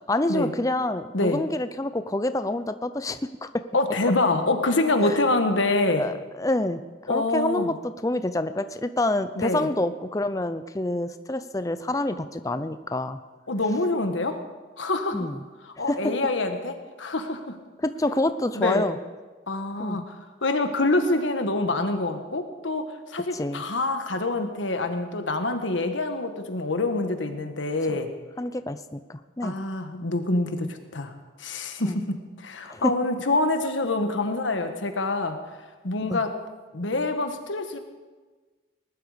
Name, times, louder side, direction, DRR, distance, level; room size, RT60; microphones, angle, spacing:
voice 1, 0.1-3.6 5.0-5.2 6.0-6.8 7.1-7.7 8.0-13.2 15.1-15.4 15.8-16.1 17.8-19.0 19.8-20.0 23.3-23.6 27.9-28.0 28.4-29.5 31.8-32.0 32.7-32.9 36.1-36.2, left 1 dB, 20° left, 11 dB, 0.5 m, -27 dB
voice 2, 3.7-6.1 7.1-7.7 9.4-9.7 13.5-14.4 14.8-15.3 15.7-17.6 18.5-18.9 19.5-28.1 29.4-31.1 31.4-35.4 35.8-36.3 36.7-37.8, left 2 dB, 85° left, 6 dB, 1.5 m, -26 dB
19.5 x 12.0 x 5.1 m, 1.3 s
head